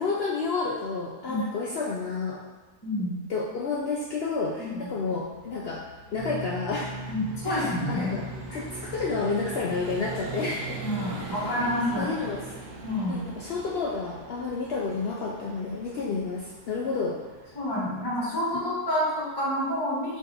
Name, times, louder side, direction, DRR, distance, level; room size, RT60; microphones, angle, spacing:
voice 1, 0.0-2.4 3.3-5.8 6.1-6.9 7.4-8.2 8.5-10.8 11.2-11.5 12.0-12.6 13.1-17.2 18.5-18.7, left 4 dB, 80° left, -3 dB, 0.5 m, -30 dB
voice 2, 2.8-3.2 4.6-4.9 7.1-8.2 8.5-8.6 10.8-12.1 12.8-13.2 17.5-20.2, left 1 dB, 20° left, -5 dB, 0.9 m, -28 dB
Vehicle, 4.2-18.8, right 3 dB, 65° right, 1.0 m, -42 dB
sound 1, 6.2-13.0, right 1 dB, 55° left, 1.1 m, -42 dB
4.8 x 2.6 x 3.9 m, 1.3 s
omnidirectional pair, 1.6 m